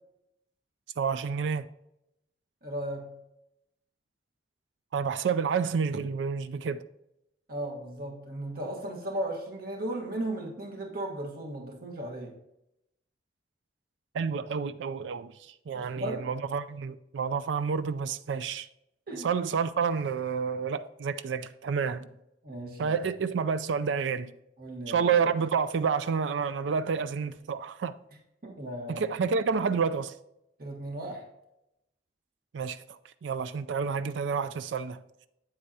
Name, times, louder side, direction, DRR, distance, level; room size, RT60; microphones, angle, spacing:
voice 1, 1.0-1.7 4.9-6.8 14.1-15.3 15.7-18.7 19.2-22.0 22.8-24.3 24.9-27.9 28.9-30.1 32.5-32.8 33.2-35.0, right 6 dB, 80° right, 0.4 m, -29 dB
voice 2, 2.6-3.2 7.5-12.4 15.7-16.3 19.1-19.3 22.0-22.1 22.4-23.0 24.6-25.1 28.4-29.1 30.6-31.3, right 1 dB, 55° right, 1.4 m, -36 dB
8.7 x 7.9 x 2.8 m
head